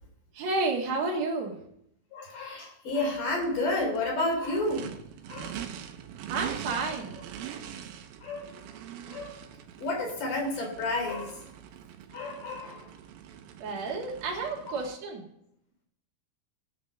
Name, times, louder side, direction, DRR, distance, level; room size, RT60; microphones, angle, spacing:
voice 1, 0.3-1.6 6.3-7.1 13.6-15.2, right 3 dB, 55° right, -2 dB, 2.7 m, -31 dB
voice 2, 2.1-4.9 5.3-5.6 6.7-6.9 8.2-8.6 9.1-9.4 9.8-11.5 12.1-12.9 14.7-14.8, left 2 dB, 60° left, 1 dB, 5.0 m, -31 dB
Race car auto racing / Idling / Accelerating revving vroom, 2.9-14.9, right 9 dB, 80° right, 2.7 m, -43 dB
19.0 x 6.7 x 6.5 m, 0.76 s
omnidirectional pair, 4.2 m